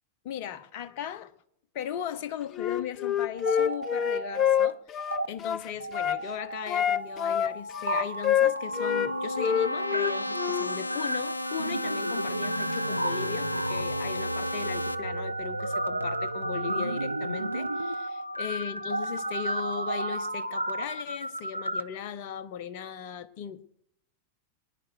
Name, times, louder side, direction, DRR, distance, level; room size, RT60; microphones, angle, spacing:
voice 1, 0.2-1.3 1.7-23.6, left 9 dB, 45° left, 1.1 m, -38 dB
Wind instrument woodwind instrument, 2.5-6.2 6.7-9.1 9.4-10.7, left 9 dB, 30° left, 0.5 m, -27 dB
sound 1, 3.3-4.7 5.0-5.3 5.8-21.8, right 1 dB, 85° right, 0.6 m, -33 dB
sound 2, 8.5-15.0, left 2 dB, 75° left, 0.6 m, -35 dB
23.0 x 10.0 x 4.5 m
figure-of-eight pair, 90°, 0 cm